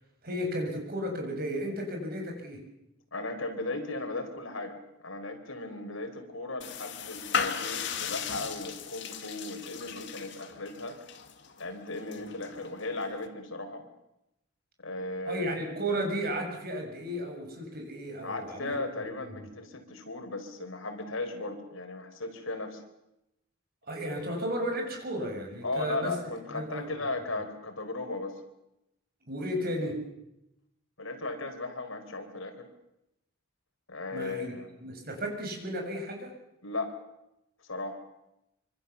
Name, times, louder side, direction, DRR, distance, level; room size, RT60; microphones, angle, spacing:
voice 1, 0.2-2.6 12.1-12.2 15.3-18.8 23.9-26.1 26.5-26.9 29.3-30.0 34.1-34.5 34.8-36.3, equal, 50° right, 2 dB, 6.9 m, -34 dB
voice 2, 3.1-11.0 11.6-13.8 14.8-15.5 18.2-22.8 24.1-24.2 25.6-28.4 31.0-32.7 33.9-34.7 36.6-36.9 37.6-38.0, left 2 dB, 85° left, 6 dB, 4.5 m, -36 dB
sound 1, 6.6-13.3, left 7 dB, 60° left, 2.3 m, -37 dB
25.5 x 25.5 x 7.1 m, 0.87 s
head